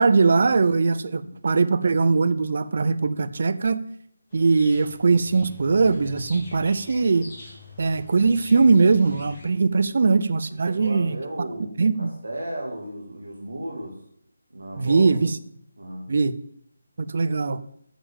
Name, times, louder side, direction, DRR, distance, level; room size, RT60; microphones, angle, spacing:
voice 1, 0.0-3.8 4.3-7.3 7.8-11.2 11.8-12.1 14.8-15.4 16.1-16.4 17.0-17.6, right 4 dB, 55° right, 13 dB, 0.6 m, -20 dB
sound 1, 4.3-9.5, left 3 dB, 25° left, 3.8 m, -45 dB
voice 2, 10.5-11.7 12.0-14.0 14.5-15.1 15.8-16.1, right 1 dB, 80° right, -2 dB, 2.6 m, -35 dB
8.9 x 6.9 x 7.3 m, 0.69 s
figure-of-eight pair, 155°, 0 cm